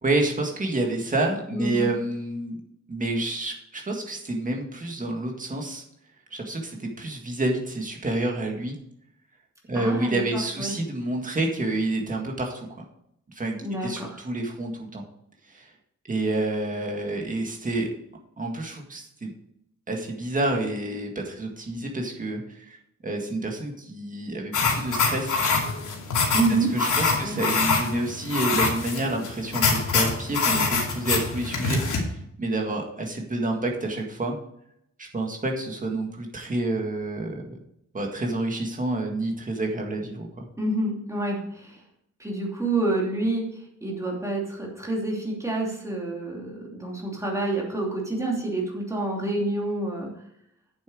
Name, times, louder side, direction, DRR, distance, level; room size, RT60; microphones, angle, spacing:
voice 1, 0.0-2.6 2.9-5.8 6.3-8.8 9.7-12.8 13.4-13.6 13.8-15.0 15.5-15.7 16.1-17.9 18.4-19.3 19.9-22.8 23.0-25.4 26.5-34.4 35.0-37.4 37.9-40.4, right 2 dB, 25° right, 1 dB, 1.8 m, -28 dB
voice 2, 1.5-1.9 9.7-10.7 13.6-14.2 26.3-26.7 27.2-27.4 40.6-41.8 42.2-43.5 43.8-50.1, right 2 dB, 10° right, -2 dB, 2.8 m, -28 dB
sound 1, 24.5-32.0, left 4 dB, 85° left, 2.6 m, -25 dB
8.8 x 7.4 x 4.8 m, 0.76 s
wide cardioid pair, 170°, 30 cm